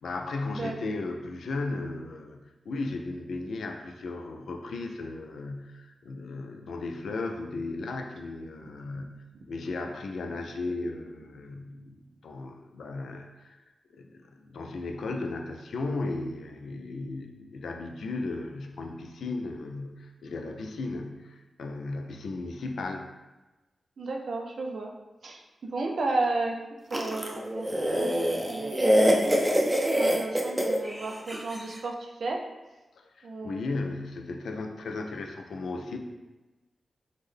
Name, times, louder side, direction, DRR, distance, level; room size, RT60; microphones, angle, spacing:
voice 1, 0.0-13.6 13.9-23.1 33.0-36.0, left 3 dB, 85° left, 4 dB, 0.3 m, -36 dB
voice 2, 24.0-24.9 25.2-26.6 26.9-27.6 28.0-28.2 28.5-28.9 29.9-32.4 33.2-33.6, right 3 dB, 75° right, 2 dB, 0.4 m, -32 dB
sound 1, 26.9-31.6, equal, 15° right, 0.4 m, -25 dB
3.6 x 2.1 x 3.3 m, 1.1 s
cardioid pair, 70°, 0 cm